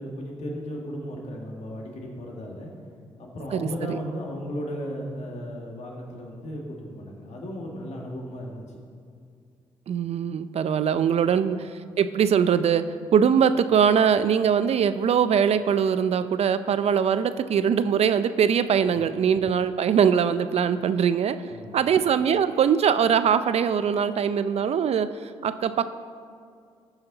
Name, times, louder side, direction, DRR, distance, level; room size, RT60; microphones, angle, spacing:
voice 1, 0.0-2.7 3.2-8.8 11.2-11.4 21.5-21.8, equal, 65° left, 0 dB, 1.9 m, -35 dB
voice 2, 3.5-4.0 9.9-11.7 12.0-12.8 13.1-21.4 21.7-25.1 25.4-25.9, right 7 dB, 60° right, 12 dB, 0.5 m, -22 dB
14.5 x 5.7 x 4.0 m, 2.3 s
supercardioid pair, 55°, 12 cm